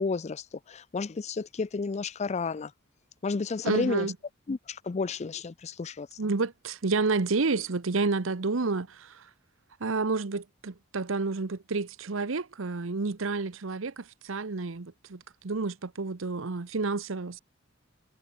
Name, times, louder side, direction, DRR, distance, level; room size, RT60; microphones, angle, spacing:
voice 1, 0.0-2.7 3.2-4.1 4.5-6.1, left 4 dB, 35° left, 0.4 m, -31 dB
voice 2, 3.6-4.1 6.2-9.2 9.8-17.4, right 3 dB, 70° right, 0.9 m, -30 dB
head